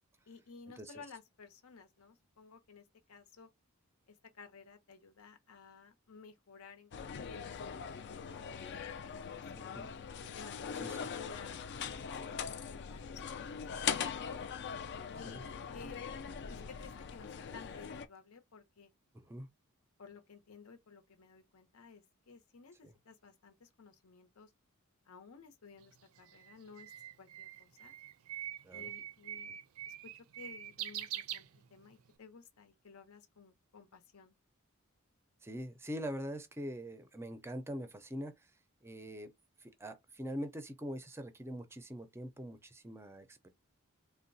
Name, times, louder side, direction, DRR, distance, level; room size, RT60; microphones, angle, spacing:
voice 1, 0.3-3.5 4.1-9.9 10.3-11.7 12.0-14.4 15.2-16.1 16.5-18.9 20.0-24.5 25.1-26.9 27.2-27.9 28.7-29.6 29.9-31.4 31.7-34.3, left 5 dB, 80° left, 0.8 m, -55 dB
sound 1, 6.9-18.1, left 7 dB, 55° left, 0.4 m, -41 dB
voice 2, 9.5-9.9 10.7-11.1 15.2-15.4 19.1-19.5 22.8-22.9 28.6-28.9 29.5-29.6 35.4-38.5 38.8-39.3 39.6-43.5, equal, 10° right, 0.5 m, -43 dB
Bird, 25.8-32.1, right 11 dB, 75° right, 0.4 m, -44 dB
3.7 x 2.1 x 2.6 m
head